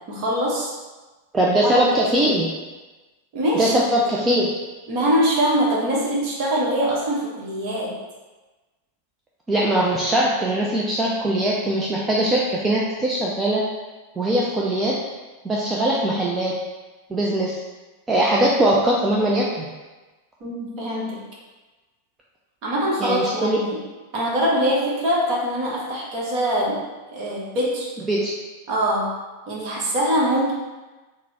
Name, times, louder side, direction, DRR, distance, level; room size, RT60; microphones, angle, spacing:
voice 1, 0.1-0.7 1.6-1.8 2.2-2.3 3.3-3.9 4.9-8.0 20.4-21.2 22.6-23.8 24.1-26.8 27.1-27.9 28.7-29.1 29.5-30.5, equal, 45° right, -4 dB, 1.0 m, -23 dB
voice 2, 1.3-2.5 3.5-4.5 9.5-13.6 14.2-15.0 15.4-16.5 17.1-17.6 18.1-19.7 23.0-23.6 28.1-28.3, right 1 dB, 15° right, -4 dB, 0.4 m, -21 dB
3.9 x 2.1 x 4.1 m, 1.2 s
figure-of-eight pair, 90°, 0 cm